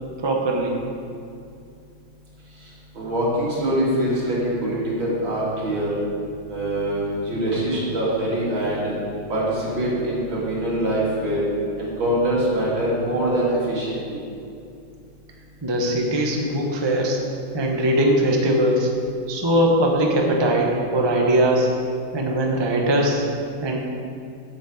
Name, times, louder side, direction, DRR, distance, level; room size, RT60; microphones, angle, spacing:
voice 1, 0.2-0.8 15.6-17.2 17.5-18.9 19.3-21.7 22.1-23.2 23.6-23.8, right 1 dB, 25° right, 0 dB, 0.5 m, -20 dB
voice 2, 2.9-6.0 6.5-8.9 9.3-11.4 11.8-14.2, right 1 dB, 65° right, -6 dB, 3.2 m, -24 dB
8.1 x 6.2 x 7.8 m, 2.5 s
omnidirectional pair, 2.3 m